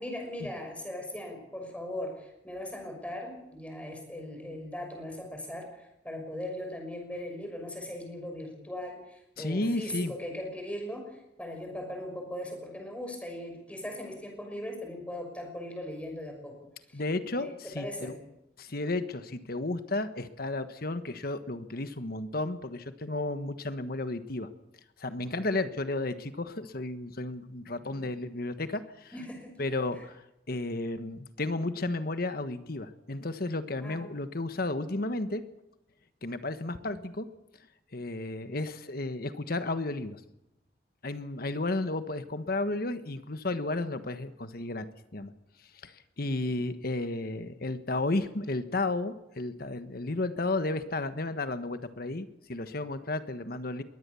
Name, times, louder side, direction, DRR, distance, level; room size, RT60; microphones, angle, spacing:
voice 1, 0.0-16.6 16.9-17.0 17.3-18.2 27.8-28.1 29.1-29.5 33.8-34.0, left 1 dB, 10° left, 3 dB, 6.1 m, -39 dB
voice 2, 9.4-10.1 16.9-17.5 17.7-18.1 18.6-24.5 25.0-29.1 29.6-30.2 30.5-35.4 36.2-37.3 37.9-40.2 41.0-44.9 45.1-45.3 45.8-45.9 46.2-53.8, left 2 dB, 60° left, 10 dB, 1.3 m, -33 dB
22.0 x 18.0 x 7.0 m, 0.86 s
head